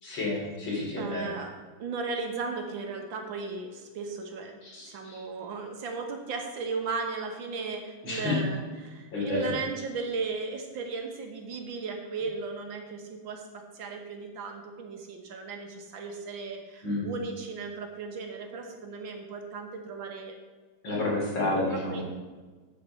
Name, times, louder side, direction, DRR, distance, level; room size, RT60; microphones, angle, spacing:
voice 1, 0.0-1.3 4.6-5.2 8.0-8.5 9.1-9.5 16.8-17.1 20.8-22.0, left 2 dB, 90° left, -4 dB, 3.8 m, -30 dB
voice 2, 1.0-1.5 1.8-4.5 4.8-20.4 21.7-22.0, right 4 dB, 85° right, 3 dB, 2.0 m, -36 dB
8.5 x 7.4 x 5.6 m, 1.4 s
omnidirectional pair, 2.1 m